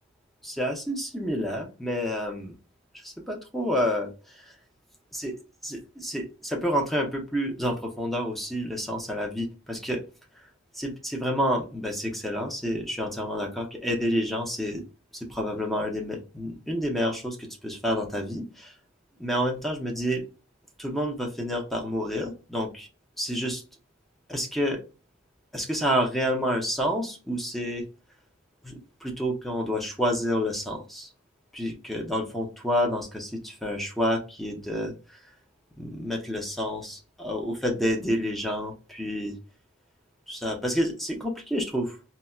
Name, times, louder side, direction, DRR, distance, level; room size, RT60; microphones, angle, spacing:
voice 1, 0.4-2.5 2.9-4.5 5.1-5.3 5.6-10.0 10.7-14.8 15.1-18.7 19.2-20.2 20.8-22.9 23.2-23.6 24.3-24.8 25.5-27.8 28.6-31.1 31.5-35.2 35.8-39.3 40.3-42.0, equal, ahead, 1 dB, 0.6 m, -29 dB
4.1 x 2.1 x 2.3 m, 0.33 s
head